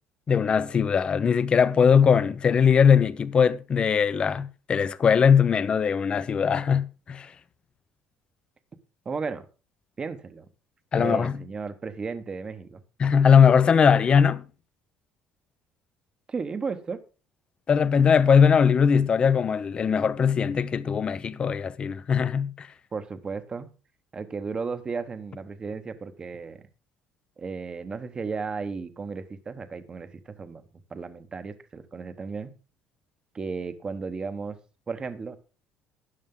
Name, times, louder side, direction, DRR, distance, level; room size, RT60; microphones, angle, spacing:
voice 1, 0.3-7.3 10.9-11.3 13.0-14.4 17.7-22.7, left 7 dB, 30° left, 0.8 m, -20 dB
voice 2, 9.0-9.4 10.0-10.4 10.9-12.8 16.3-17.0 22.9-23.7 24.1-26.6 27.4-30.6 30.9-32.5 33.3-34.6 34.9-35.4, right 5 dB, 25° right, 1.2 m, -34 dB
12.5 x 10.0 x 3.8 m
cardioid pair, 130°, 3 cm